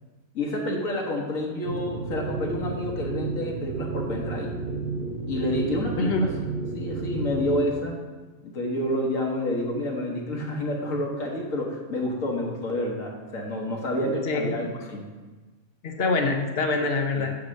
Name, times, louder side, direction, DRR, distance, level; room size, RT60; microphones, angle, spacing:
voice 1, 0.3-4.5 5.3-6.3 6.7-8.0 8.4-15.0 17.1-17.3, left 1 dB, 75° left, -1 dB, 1.5 m, -29 dB
sound 1, 1.6-7.7, right 4 dB, 55° right, 0.9 m, -32 dB
voice 2, 14.0-14.5 15.8-17.3, left 3 dB, 55° left, 4 dB, 0.8 m, -25 dB
8.5 x 2.9 x 6.2 m, 1.3 s
omnidirectional pair, 1.4 m